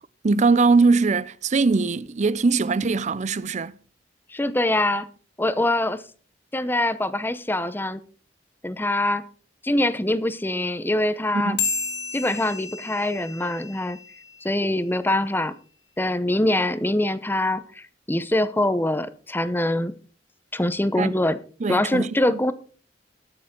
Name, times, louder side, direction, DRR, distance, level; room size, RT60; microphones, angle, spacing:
voice 1, 0.2-3.7 11.3-11.7 21.0-21.2 21.6-22.1, right 4 dB, 40° right, 0.5 m, -21 dB
voice 2, 4.3-5.1 5.4-6.0 6.5-8.0 8.6-9.2 9.6-11.6 12.1-14.0 14.4-15.5 16.0-19.9 20.5-21.4 21.7-22.5, left 1 dB, 10° left, 0.7 m, -24 dB
sound 1, 11.6-14.4, left 6 dB, 80° left, 3.5 m, -31 dB
20.5 x 6.8 x 3.8 m
head